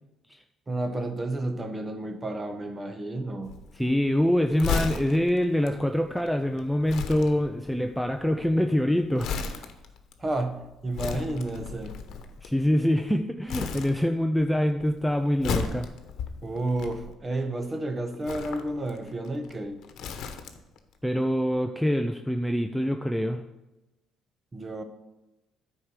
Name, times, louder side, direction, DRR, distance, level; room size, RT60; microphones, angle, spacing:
voice 1, 0.7-3.6 10.2-11.9 16.4-19.8 24.5-24.8, right 2 dB, 25° right, 7 dB, 1.2 m, -31 dB
Crumpling crinkling, 3.4-13.1 13.5-14.4 14.7-17.4 18.1-20.8 21.1-21.2, left 6 dB, 70° left, 1.0 m, -35 dB
voice 2, 3.8-9.6 12.4-15.9 21.0-23.4, equal, ahead, 5 dB, 0.5 m, -25 dB
9.5 x 4.7 x 6.6 m, 0.98 s
cardioid pair, 100°, 0 cm